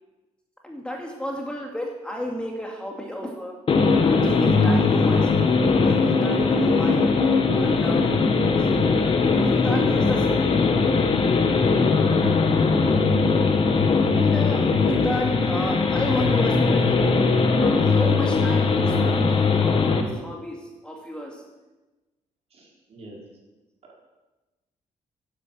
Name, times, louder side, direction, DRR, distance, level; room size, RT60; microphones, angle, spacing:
voice 1, 0.6-3.5 4.0-5.5 5.8-7.1 7.4-8.6 9.5-11.9 12.8-13.5 14.1-17.0 17.4-21.4, equal, 5° left, 0 dB, 2.3 m, -33 dB
sound 1, 3.7-20.0, left 4 dB, 45° left, 1.8 m, -20 dB
voice 2, 22.5-23.2 23.8-24.0, right 1 dB, 55° right, -2 dB, 4.5 m, -46 dB
11.0 x 10.5 x 7.6 m, 1.1 s
cardioid pair, 120°, 13 cm